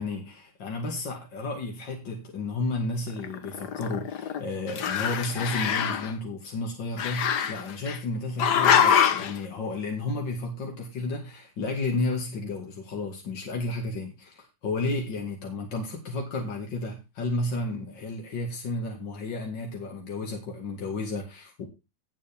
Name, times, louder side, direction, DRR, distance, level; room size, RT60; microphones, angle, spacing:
voice 1, 0.0-21.7, left 2 dB, 80° left, 2.9 m, -32 dB
Growling, 3.2-4.4 4.7-6.1 7.0-8.0 8.4-9.3, left 8 dB, 65° left, 1.6 m, -24 dB
17.5 x 7.3 x 3.6 m
omnidirectional pair, 2.0 m